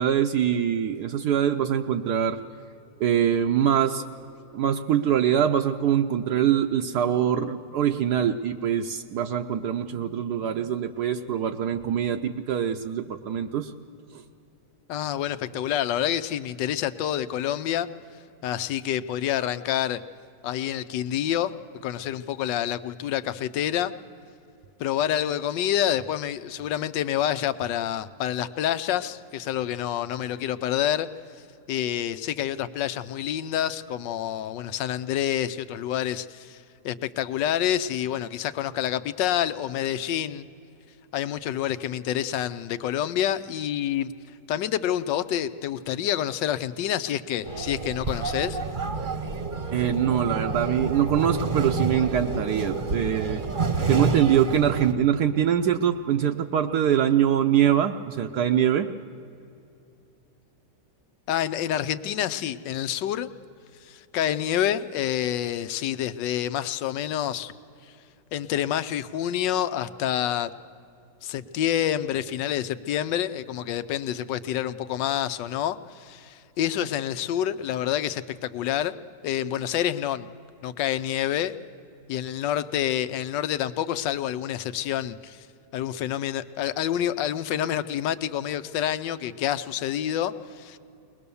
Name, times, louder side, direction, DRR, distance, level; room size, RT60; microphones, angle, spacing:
voice 1, 0.0-2.4 3.0-4.0 4.5-13.7 14.1-14.2 49.7-53.4 53.9-58.9, right 9 dB, 70° right, 5 dB, 1.1 m, -23 dB
voice 2, 14.9-17.9 18.4-20.0 20.4-21.5 21.8-23.9 24.8-31.1 31.7-40.5 41.1-44.1 44.5-48.6 61.3-63.3 63.8-67.5 68.3-70.5 71.2-78.9 79.2-80.3 80.6-81.5 82.1-85.5 85.7-90.8, left 11 dB, 85° left, 12 dB, 1.3 m, -28 dB
sound 1, 47.4-54.9, right 4 dB, 35° right, 0.9 m, -29 dB
21.5 x 20.0 x 6.9 m, 2.6 s
omnidirectional pair, 1.9 m